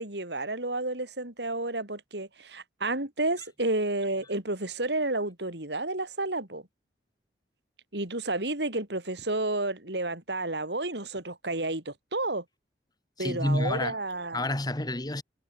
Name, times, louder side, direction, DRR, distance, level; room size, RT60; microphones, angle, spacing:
voice 1, 0.0-6.6 7.9-12.4 13.2-14.5, right 2 dB, 65° right, 4.6 m, -31 dB
voice 2, 13.2-14.0 14.3-15.2, left 1 dB, 20° left, 1.8 m, -29 dB
head